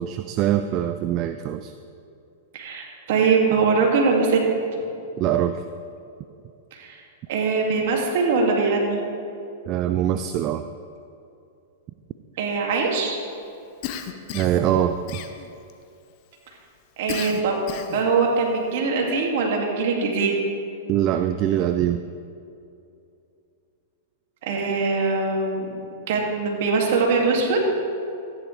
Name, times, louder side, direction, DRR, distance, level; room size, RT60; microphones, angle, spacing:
voice 1, 0.0-1.7 5.2-5.6 9.7-10.6 14.3-15.0 20.9-22.0, right 11 dB, 40° right, 9 dB, 0.4 m, -23 dB
voice 2, 2.5-4.4 6.7-7.0 7.3-9.0 12.4-13.2 17.0-20.3 24.5-25.7 26.1-27.6, right 4 dB, 60° right, 0 dB, 2.3 m, -22 dB
Cough, 13.8-14.6 15.1-15.7 17.1-18.1, left 9 dB, 50° left, 0.9 m, -33 dB
14.0 x 10.0 x 3.4 m, 2.6 s
hypercardioid pair, 110°, 0 cm